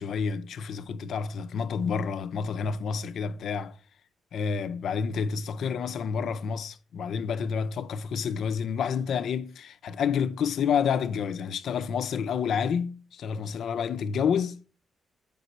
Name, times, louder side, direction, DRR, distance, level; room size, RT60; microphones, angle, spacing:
voice 1, 0.0-3.8 4.3-14.7, left 6 dB, 65° left, 0.6 m, -29 dB
7.9 x 5.3 x 4.2 m
cardioid pair, 145°, 0 cm